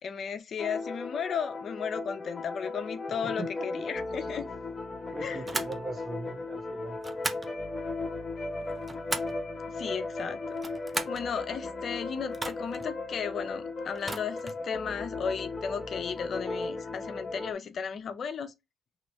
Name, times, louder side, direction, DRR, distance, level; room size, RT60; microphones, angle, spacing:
voice 1, 0.0-4.4 5.2-5.4 9.7-10.6 11.1-18.5, left 6 dB, 55° left, 0.5 m, -35 dB
sound 1, 0.6-17.5, left 3 dB, 35° left, 0.9 m, -36 dB
voice 2, 3.2-3.8 5.1-7.0, right 3 dB, 40° right, 1.3 m, -40 dB
sound 2, 5.4-5.8 7.0-7.5 8.6-9.4 10.5-11.2 12.3-12.9 13.9-14.6, right 2 dB, 20° right, 0.6 m, -36 dB
3.0 x 3.0 x 3.1 m
supercardioid pair, 65°, 0 cm